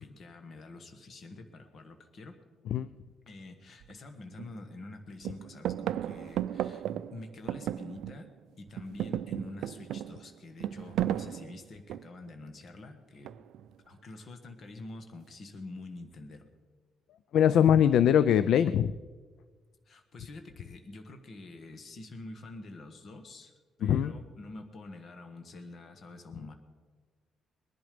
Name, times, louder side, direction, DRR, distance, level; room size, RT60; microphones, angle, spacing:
voice 1, 0.0-2.4 3.3-8.3 8.6-13.3 13.8-16.5 19.8-23.5 23.8-26.5, left 2 dB, 40° left, 6 dB, 1.3 m, -47 dB
sound 1, 3.8-3.9 4.4-4.9 5.2-8.4 8.7-12.3 13.2-13.7, right 11 dB, 75° right, 0.4 m, -35 dB
voice 2, 17.3-19.0 23.8-24.1, left 9 dB, 65° left, 15 dB, 0.4 m, -22 dB
21.0 x 11.0 x 5.1 m, 1.4 s
cardioid pair, 165°, 0 cm